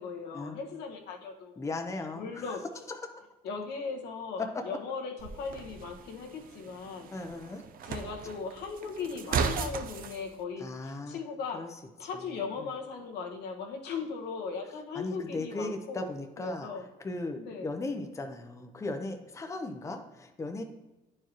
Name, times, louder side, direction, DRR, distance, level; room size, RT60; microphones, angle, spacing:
voice 1, 0.0-1.7 2.2-2.6 3.4-7.1 7.9-11.6 12.0-16.1 16.4-16.8 17.3-17.7, left 5 dB, 80° left, 2 dB, 1.3 m, -38 dB
voice 2, 1.6-2.6 2.9-3.2 4.4-4.6 7.1-7.6 10.6-11.2 11.5-12.7 14.9-20.6, left 2 dB, 15° left, 5 dB, 0.7 m, -37 dB
sound 1, 5.2-10.2, right 6 dB, 55° right, 0.6 m, -36 dB
9.6 x 4.7 x 3.0 m, 1.1 s
cardioid pair, 110°, 17 cm